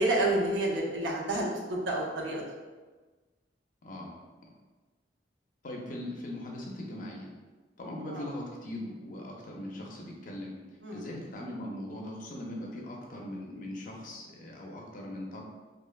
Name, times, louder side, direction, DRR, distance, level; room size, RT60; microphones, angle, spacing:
voice 1, 0.0-2.4 8.1-8.3 10.8-11.1, right 1 dB, 90° right, -1 dB, 0.5 m, -29 dB
voice 2, 5.6-7.3 7.8-10.5 10.9-15.4, left 1 dB, 45° left, -1 dB, 0.4 m, -40 dB
2.9 x 2.1 x 2.2 m, 1.3 s
head